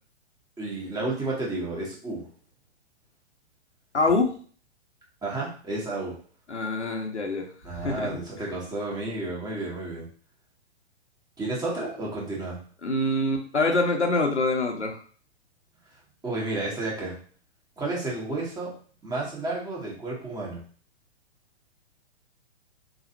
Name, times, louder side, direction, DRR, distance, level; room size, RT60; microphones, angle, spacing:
voice 1, 0.6-2.3 5.2-6.2 7.6-10.1 11.4-12.6 16.2-17.1 17.8-18.7 19.0-20.6, right 2 dB, 10° right, -4 dB, 1.3 m, -31 dB
voice 2, 3.9-4.3 6.5-8.1 12.8-15.0, left 2 dB, 90° left, 4 dB, 0.9 m, -25 dB
4.0 x 3.0 x 2.8 m, 0.43 s
figure-of-eight pair, 115°, 34 cm